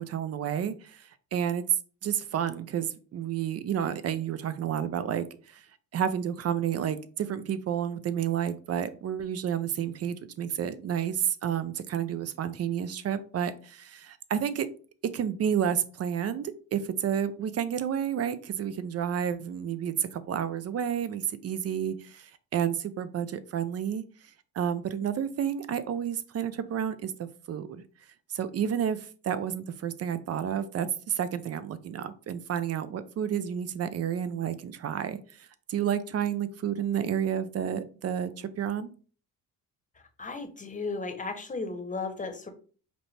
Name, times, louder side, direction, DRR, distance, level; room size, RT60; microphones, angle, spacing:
voice 1, 0.0-1.6 2.0-5.6 5.9-14.7 15.1-24.0 24.5-27.8 28.3-38.9, right 9 dB, 40° right, 13 dB, 0.5 m, -30 dB
voice 2, 40.2-42.5, left 3 dB, 20° left, 7 dB, 0.9 m, -35 dB
5.1 x 2.1 x 3.3 m, 0.40 s
supercardioid pair, 70°, 39 cm